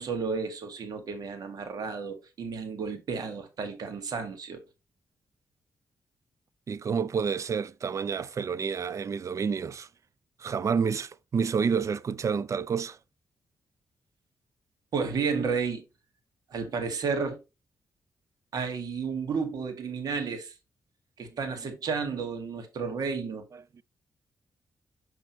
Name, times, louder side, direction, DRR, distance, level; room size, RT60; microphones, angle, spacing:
voice 1, 0.0-4.6 14.9-15.8 16.5-17.4 18.5-20.5 21.2-23.5, right 5 dB, 70° right, 1.9 m, -32 dB
voice 2, 6.7-9.9 10.4-13.0 23.5-23.6, right 6 dB, 50° right, 0.5 m, -29 dB
6.1 x 6.1 x 3.1 m
cardioid pair, 65°, 7 cm